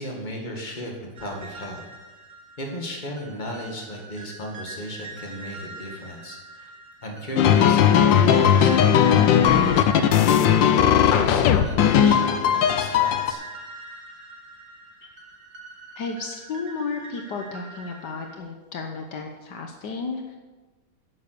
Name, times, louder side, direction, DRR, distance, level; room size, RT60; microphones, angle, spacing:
voice 1, 0.0-1.8 2.6-6.7 7.0-13.4, equal, 25° left, 0 dB, 2.1 m, -35 dB
sound 1, 1.1-18.4, right 3 dB, 55° right, 2.5 m, -43 dB
sound 2, 7.4-13.3, left 9 dB, 90° left, 1.5 m, -17 dB
voice 2, 16.0-20.4, left 4 dB, 70° left, 3 dB, 1.6 m, -33 dB
11.5 x 7.6 x 6.8 m, 1.2 s
omnidirectional pair, 1.9 m